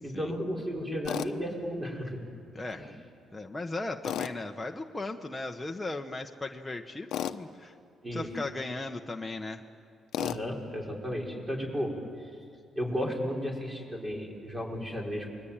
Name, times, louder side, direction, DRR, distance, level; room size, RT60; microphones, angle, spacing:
voice 1, 0.0-2.2 2.7-2.9 8.0-8.3 10.2-12.0 12.8-15.3, equal, 20° right, 0 dB, 5.8 m, -34 dB
Tools, 1.1-1.3 4.0-4.4 7.1-7.4 10.1-10.4, left 11 dB, 80° left, 0.9 m, -32 dB
voice 2, 2.5-2.9 3.3-7.7 8.1-9.6, left 2 dB, 15° left, 2 dB, 1.2 m, -37 dB
29.5 x 22.0 x 9.0 m, 2.4 s
cardioid pair, 90°, 0 cm